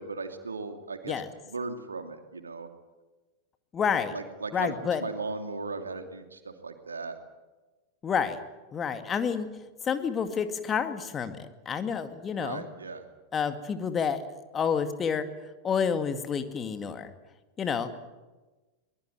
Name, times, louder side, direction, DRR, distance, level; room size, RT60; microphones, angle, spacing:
voice 1, 0.0-2.7 4.1-4.7 5.0-7.2 12.4-13.1, right 3 dB, 75° right, 7 dB, 2.7 m, -37 dB
voice 2, 3.7-4.1 4.5-5.0 8.0-8.4 8.7-9.5 9.9-11.4 11.7-12.6 13.3-14.2 14.5-15.3 15.6-17.1 17.6-18.1, left 6 dB, 25° left, 9 dB, 2.2 m, -29 dB
23.5 x 21.0 x 9.1 m, 1.2 s
figure-of-eight pair, 90°, 0 cm